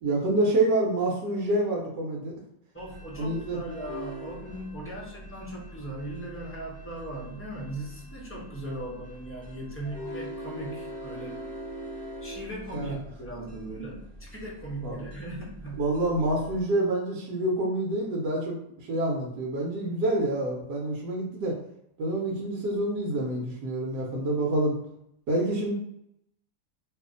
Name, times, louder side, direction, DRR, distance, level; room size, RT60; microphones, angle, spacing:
voice 1, 0.0-2.3 3.2-3.6 12.7-12.9 14.8-15.0 15.8-21.6 22.0-24.8 25.3-25.7, right 1 dB, 80° right, -2 dB, 1.3 m, -27 dB
voice 2, 2.7-11.5 12.2-15.9, right 1 dB, 15° left, -6 dB, 0.4 m, -38 dB
sound 1, 2.8-16.6, equal, 35° left, 0.8 m, -43 dB
2.7 x 2.6 x 3.7 m, 0.76 s
omnidirectional pair, 1.8 m